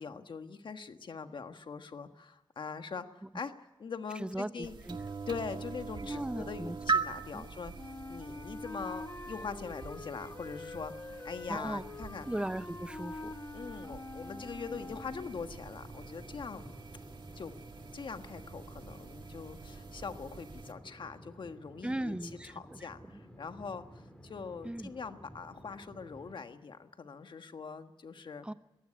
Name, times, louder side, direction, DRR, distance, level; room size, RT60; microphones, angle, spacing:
voice 1, 0.0-3.5 3.8-4.7 5.3-12.3 13.5-16.8 17.3-17.6 17.9-22.2 22.4-28.5, left 5 dB, 75° left, 8 dB, 1.4 m, -42 dB
voice 2, 4.2-5.0 6.0-6.8 7.3-7.5 11.5-11.9 12.3-13.3 21.8-22.8 24.6-24.9 28.4-28.5, right 1 dB, 10° right, 13 dB, 0.8 m, -37 dB
sound 1, 4.6-20.7, right 5 dB, 70° right, 1.8 m, -42 dB
Wind instrument woodwind instrument, 7.7-15.5, left 3 dB, 30° left, 1.6 m, -45 dB
sound 2, 14.7-26.3, equal, 10° left, 3.9 m, -53 dB
22.0 x 15.5 x 10.0 m, 1.0 s
wide cardioid pair, 110°, 8 cm